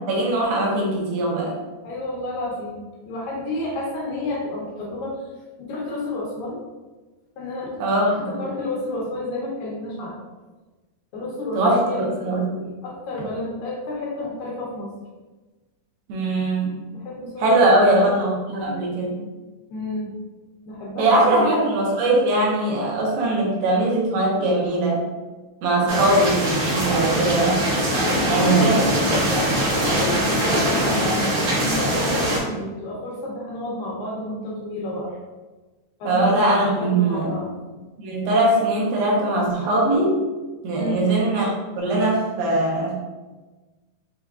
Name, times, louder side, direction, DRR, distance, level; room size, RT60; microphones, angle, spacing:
voice 1, 0.1-1.6 7.8-8.3 11.5-12.4 16.1-16.8 17.4-19.2 21.0-25.0 25.6-27.7 28.3-28.8 36.1-37.4 38.0-40.2 40.6-42.9, right 2 dB, 80° right, -3 dB, 2.5 m, -21 dB
voice 2, 1.8-5.2 5.6-6.6 7.4-7.8 8.1-10.2 11.1-14.9 16.9-18.1 19.7-20.1 20.7-21.5 25.8-26.2 28.2-35.2 36.0-36.4 36.8-37.5 40.8-41.1, left 1 dB, 75° left, -4 dB, 2.2 m, -31 dB
sound 1, 25.9-32.4, equal, 55° right, 1.7 m, -22 dB
6.4 x 2.9 x 2.4 m, 1.2 s
omnidirectional pair, 4.4 m